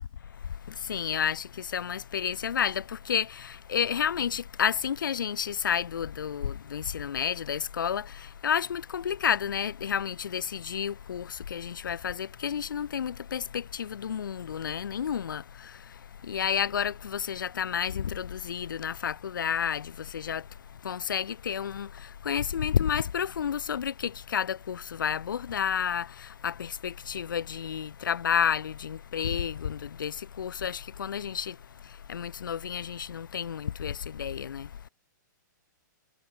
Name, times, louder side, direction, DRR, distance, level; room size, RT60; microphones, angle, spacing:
voice 1, 0.8-15.4 16.2-20.4 20.8-21.9 22.2-31.6 32.1-34.7, left 8 dB, 80° left, 2.3 m, -31 dB
hypercardioid pair, 155°, 11 cm